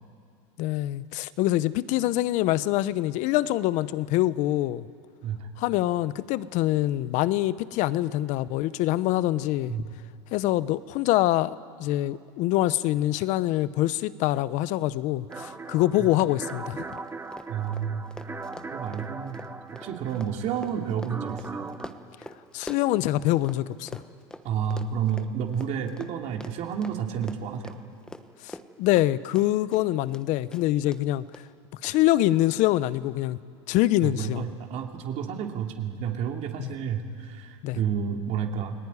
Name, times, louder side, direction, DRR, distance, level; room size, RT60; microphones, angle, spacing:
voice 1, 0.6-4.9 5.6-9.7 10.3-16.8 22.5-24.0 28.4-31.2 31.8-33.4 33.7-34.5 36.6-36.7 37.6-37.8, left 15 dB, 50° left, 16 dB, 0.9 m, -25 dB
Run, 15.3-15.4 15.7-15.8 16.1-23.6 23.9-30.2 30.5-31.0 31.3-31.4 31.8-31.9, left 1 dB, 5° left, 1.2 m, -44 dB
sound 1, 15.3-21.9, right 4 dB, 15° right, 1.3 m, -39 dB
voice 2, 17.5-18.0 18.7-19.4 19.7-21.7 24.4-27.8 34.0-38.7, right 8 dB, 45° right, 2 dB, 2.9 m, -30 dB
29.5 x 19.5 x 9.8 m, 2.3 s
supercardioid pair, 125°, 16 cm